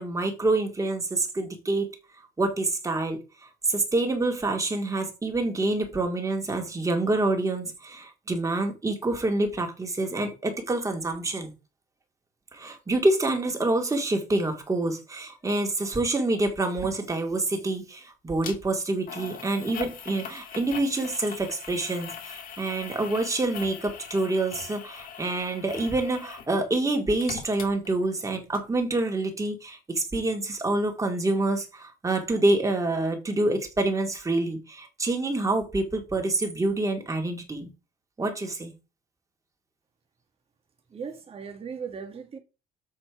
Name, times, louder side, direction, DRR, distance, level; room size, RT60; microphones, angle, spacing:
voice 1, 0.0-1.9 2.4-11.5 12.5-37.7 38.2-38.7, right 2 dB, 20° right, 2.2 m, -27 dB
sound 1, 18.4-18.6 19.1-26.5 26.8-28.3 28.6-28.7, left 7 dB, 55° left, 1.7 m, -41 dB
voice 2, 40.9-42.4, right 6 dB, 35° right, 1.9 m, -37 dB
7.5 x 4.4 x 4.8 m
cardioid pair, 110°, 17 cm